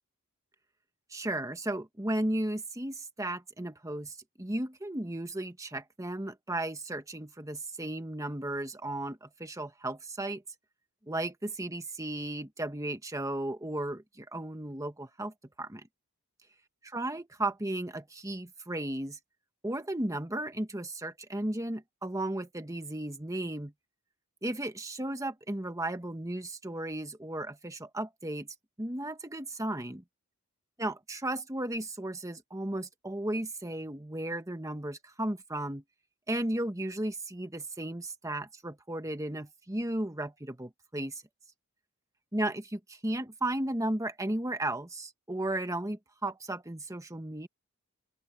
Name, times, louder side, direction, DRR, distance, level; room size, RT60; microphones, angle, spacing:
voice 1, 1.1-10.4 11.1-15.9 16.9-19.2 19.6-23.7 24.4-28.5 28.8-30.0 30.8-35.8 36.3-41.1 42.3-47.5, right 1 dB, 15° right, 1.3 m, -35 dB
open air
head